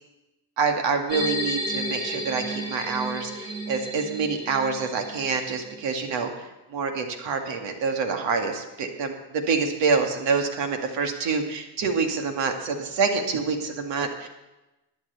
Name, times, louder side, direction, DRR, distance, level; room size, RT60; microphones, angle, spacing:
voice 1, 0.6-14.3, right 4 dB, 65° right, 4 dB, 2.2 m, -27 dB
sound 1, 1.1-5.8, equal, 20° right, 3.1 m, -32 dB
11.0 x 9.2 x 7.0 m, 1.0 s
supercardioid pair, 70°, 48 cm